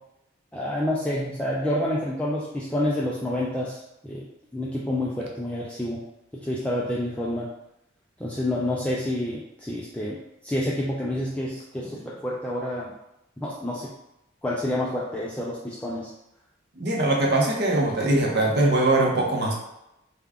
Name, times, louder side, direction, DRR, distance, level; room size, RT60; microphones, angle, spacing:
voice 1, 0.5-4.3 4.5-6.0 6.3-7.5 8.2-12.9 13.4-13.9 14.4-16.1, left 1 dB, 5° left, -6 dB, 0.3 m, -28 dB
voice 2, 16.8-19.5, right 2 dB, 55° right, -1 dB, 0.7 m, -21 dB
3.5 x 2.3 x 3.4 m, 0.87 s
head